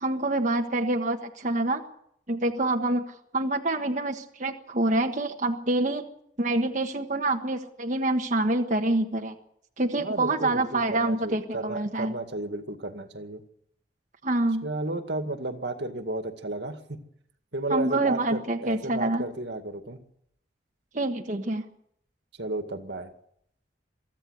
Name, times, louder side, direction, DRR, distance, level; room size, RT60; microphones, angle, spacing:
voice 1, 0.0-1.8 2.3-6.0 6.4-9.3 9.8-12.1 14.2-14.7 17.7-19.2 20.9-21.7, right 2 dB, 45° right, 3 dB, 1.4 m, -26 dB
voice 2, 10.0-13.4 14.6-17.0 17.5-20.0 22.4-23.1, right 2 dB, 75° right, 7 dB, 2.2 m, -33 dB
23.5 x 14.5 x 8.2 m, 0.71 s
head